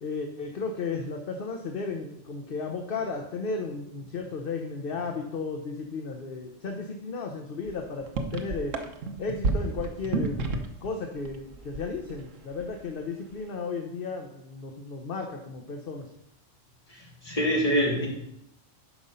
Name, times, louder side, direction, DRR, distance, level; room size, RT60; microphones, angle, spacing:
voice 1, 0.0-8.8 9.2-16.1, left 4 dB, 50° left, 3 dB, 1.0 m, -34 dB
sound 1, 7.6-7.7 8.0-10.9 11.2-12.2 12.5-12.8, right 3 dB, 85° right, 1.3 m, -30 dB
voice 2, 16.9-18.1, equal, 30° left, -4 dB, 2.9 m, -25 dB
11.5 x 5.3 x 5.5 m, 0.78 s
omnidirectional pair, 1.3 m